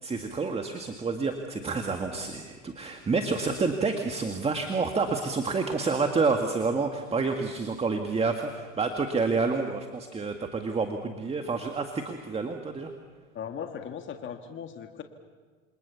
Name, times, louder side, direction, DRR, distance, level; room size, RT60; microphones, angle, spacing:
voice 1, 0.0-12.9, right 4 dB, 15° right, 5 dB, 1.9 m, -29 dB
voice 2, 13.3-15.0, left 8 dB, 30° left, 5 dB, 2.0 m, -38 dB
28.0 x 25.0 x 7.1 m, 1.5 s
hypercardioid pair, 105°, 38 cm